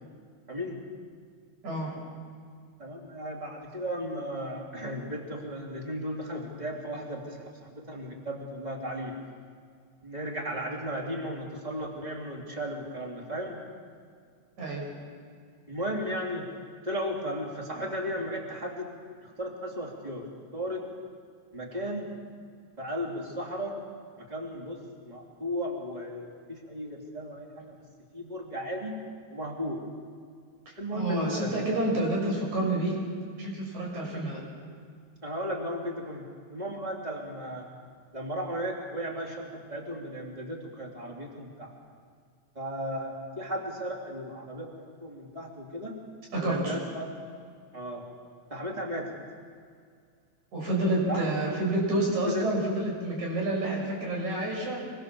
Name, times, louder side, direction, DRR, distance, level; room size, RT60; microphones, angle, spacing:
voice 1, 0.5-0.8 2.8-9.2 10.0-13.6 15.7-16.5 16.8-18.9 19.2-20.3 20.5-20.8 21.5-22.1 22.8-23.8 24.2-27.8 28.1-28.9 29.3-29.8 30.8-31.7 34.1-34.2 35.2-37.7 38.1-41.7 42.6-46.0 46.4-47.2 47.7-48.0 48.5-49.1 51.1-51.3 52.3-52.5, equal, 15° right, -1 dB, 3.5 m, -35 dB
voice 2, 1.6-2.0 14.6-14.9 30.7-33.1 33.3-34.4 46.3-46.8 50.5-54.9, right 1 dB, 70° right, -1 dB, 7.4 m, -29 dB
25.5 x 23.0 x 7.2 m, 2.1 s
omnidirectional pair, 3.5 m